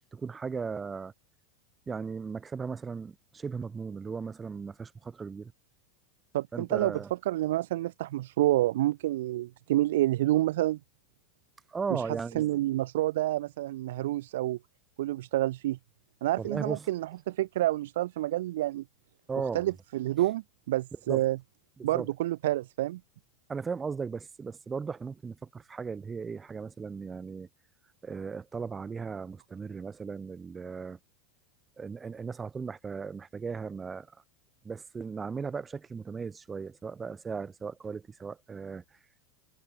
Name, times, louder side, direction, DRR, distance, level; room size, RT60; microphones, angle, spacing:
voice 1, 0.1-1.1 1.9-5.5 6.5-7.1 11.7-12.5 16.4-16.8 19.3-19.6 21.1-21.2 21.8-22.1 23.5-27.5 28.0-31.0 31.8-34.1 34.6-38.8, right 5 dB, 20° right, 2.5 m, -37 dB
voice 2, 6.3-10.8 11.9-12.0 12.4-14.6 15.0-15.8 16.2-18.8 19.5-21.4 21.8-23.0, right 15 dB, 65° right, 0.3 m, -28 dB
figure-of-eight pair, 85°, 0 cm